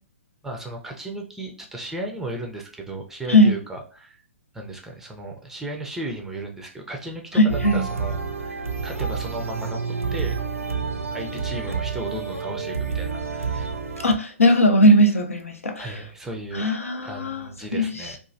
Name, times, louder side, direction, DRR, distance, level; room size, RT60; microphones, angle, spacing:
voice 1, 0.4-4.1 4.5-10.4 11.1-13.8 15.7-16.7 17.0-18.2, right 2 dB, 5° right, 1 dB, 0.4 m, -35 dB
voice 2, 7.3-7.8 14.0-16.0 16.5-18.1, equal, 80° left, 3 dB, 0.7 m, -19 dB
sound 1, 7.5-14.2, right 5 dB, 85° right, 0.5 m, -29 dB
3.0 x 2.4 x 2.5 m, 0.42 s
figure-of-eight pair, 125°, 7 cm